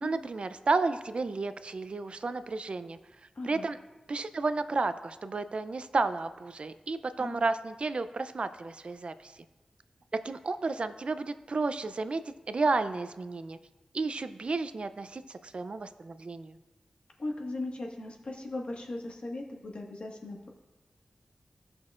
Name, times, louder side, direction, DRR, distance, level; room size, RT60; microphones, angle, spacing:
voice 1, 0.0-3.0 3.4-3.8 4.1-9.3 10.1-13.6 13.9-16.6, right 3 dB, 55° right, 11 dB, 0.4 m, -32 dB
voice 2, 3.3-3.7 7.2-7.4 17.2-20.5, left 2 dB, 60° left, 0 dB, 1.5 m, -38 dB
17.0 x 6.2 x 2.5 m, 1.1 s
wide cardioid pair, 70°, 2 cm